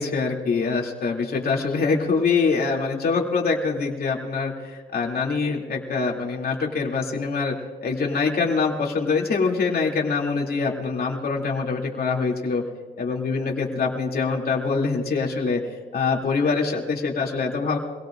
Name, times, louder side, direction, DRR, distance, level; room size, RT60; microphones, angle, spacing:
voice 1, 0.0-7.5 7.8-12.6 13.0-15.6 15.9-17.8, left 4 dB, 55° left, 0 dB, 2.7 m, -24 dB
25.5 x 17.5 x 2.5 m, 1.4 s
cardioid pair, 90°, 19 cm